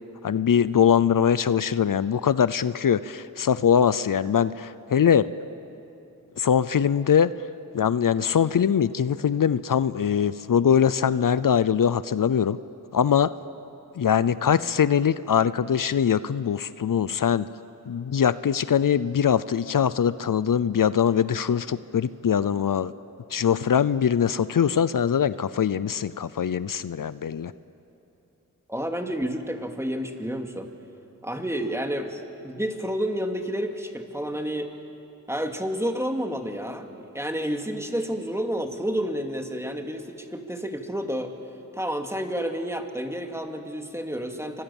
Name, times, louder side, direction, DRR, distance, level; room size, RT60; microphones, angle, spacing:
voice 1, 0.2-5.3 6.4-7.3 7.7-12.6 12.9-13.3 14.0-17.5 17.9-22.9 23.3-27.5, left 8 dB, 75° left, 16 dB, 0.6 m, -22 dB
voice 2, 28.7-30.7 31.2-34.7 35.3-41.3 41.7-44.6, equal, 10° right, 4 dB, 2.5 m, -30 dB
29.0 x 24.5 x 7.2 m, 2.9 s
cardioid pair, 50°, 33 cm